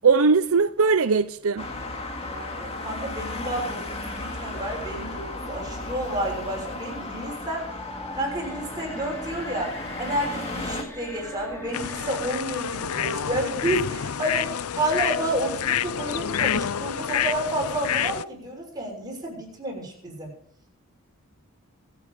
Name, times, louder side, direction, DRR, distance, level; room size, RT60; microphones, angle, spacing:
voice 1, 0.0-1.7, right 4 dB, 75° right, 0.6 m, -20 dB
Traffic noise roadway noise, 1.6-10.8, left 2 dB, 30° left, 2.3 m, -35 dB
voice 2, 2.2-7.7 8.1-20.3, right 1 dB, 20° right, 6.6 m, -30 dB
sound 1, 7.6-14.7, left 1 dB, 10° left, 1.7 m, -42 dB
sound 2, 11.7-18.2, left 9 dB, 85° left, 0.6 m, -28 dB
24.5 x 8.3 x 5.1 m
head